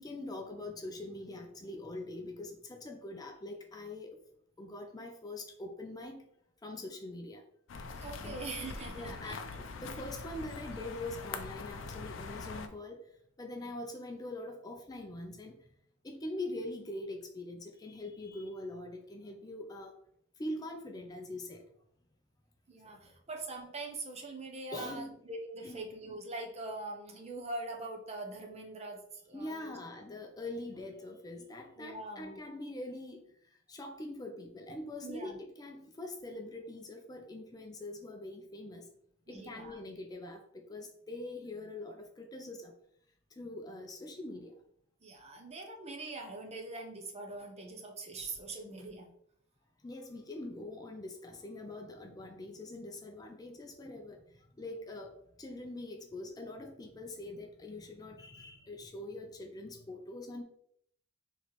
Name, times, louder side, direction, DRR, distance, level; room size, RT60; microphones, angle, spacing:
voice 1, 0.0-4.2 4.6-6.2 6.6-7.4 8.2-8.4 8.9-13.1 13.4-15.6 16.0-20.0 20.4-21.6 24.7-25.1 25.6-25.8 29.3-38.9 39.3-42.7 43.3-44.5 49.8-60.4, left 2 dB, 20° left, 3 dB, 0.4 m, -43 dB
sound 1, 7.7-12.7, left 4 dB, 75° left, 0.5 m, -43 dB
voice 2, 8.0-9.4 9.8-10.0 22.7-29.8 31.8-32.4 35.0-35.4 39.3-39.8 45.0-49.1, right 2 dB, 35° right, 3 dB, 0.7 m, -43 dB
4.1 x 3.1 x 3.0 m, 0.68 s
head